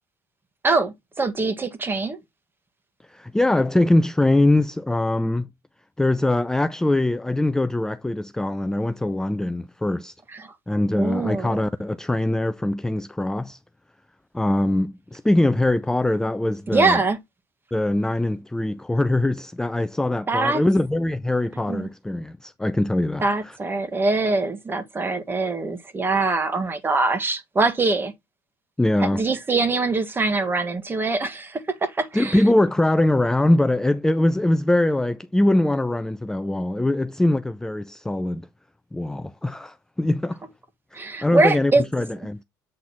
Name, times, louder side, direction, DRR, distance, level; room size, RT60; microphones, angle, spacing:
voice 1, 0.6-2.2 10.3-10.5 10.9-11.6 16.7-17.2 20.3-20.6 21.7-21.9 23.2-28.1 29.0-32.4 40.9-41.8, right 3 dB, 25° right, 1.7 m, -23 dB
voice 2, 3.1-5.5 6.0-10.1 10.7-13.6 14.3-17.0 17.7-23.6 28.8-29.3 32.1-38.4 38.9-40.4 41.2-42.4, left 1 dB, 5° left, 0.5 m, -22 dB
7.8 x 3.9 x 4.2 m
hypercardioid pair, 75°, 9 cm